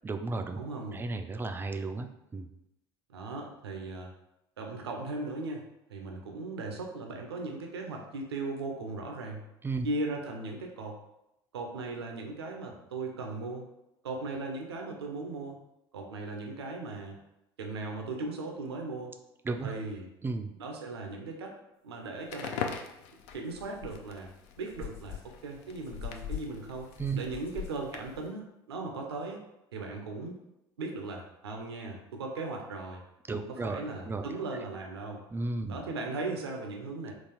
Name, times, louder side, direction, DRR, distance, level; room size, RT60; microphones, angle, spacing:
voice 1, 0.0-0.7 0.9-2.5 9.6-9.9 19.4-19.7 20.2-20.5 27.0-27.2 33.3-34.3 35.3-35.8, right 3 dB, 15° right, 6 dB, 0.3 m, -34 dB
voice 2, 0.6-1.0 3.1-4.1 4.6-5.6 5.9-9.4 9.8-11.0 11.5-13.7 14.0-15.6 15.9-17.2 17.6-19.1 19.6-20.1 20.6-21.5 21.8-22.8 23.3-24.3 24.6-26.9 27.1-29.4 29.7-30.4 30.8-33.0 33.3-35.2 35.7-37.1, right 3 dB, 85° right, 2 dB, 0.5 m, -38 dB
Crackle, 22.2-28.3, left 7 dB, 60° left, 0.4 m, -43 dB
sound 1, 22.7-22.8 23.2-28.3, left 10 dB, 45° left, 1.3 m, -44 dB
3.9 x 2.4 x 2.9 m, 0.87 s
hypercardioid pair, 70°, 13 cm